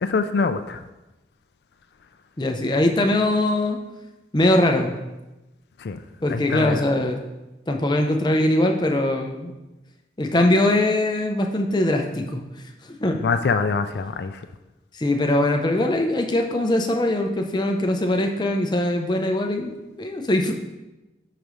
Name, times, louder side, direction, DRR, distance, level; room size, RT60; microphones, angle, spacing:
voice 1, 0.0-0.8 5.8-6.0 6.3-6.8 13.2-14.4, left 4 dB, 70° left, 8 dB, 0.4 m, -24 dB
voice 2, 2.4-3.8 4.3-4.9 6.2-7.2 7.7-9.5 10.2-12.4 13.0-13.2 14.9-20.5, left 1 dB, 25° left, 3 dB, 0.6 m, -21 dB
10.5 x 5.0 x 3.2 m, 1.0 s
head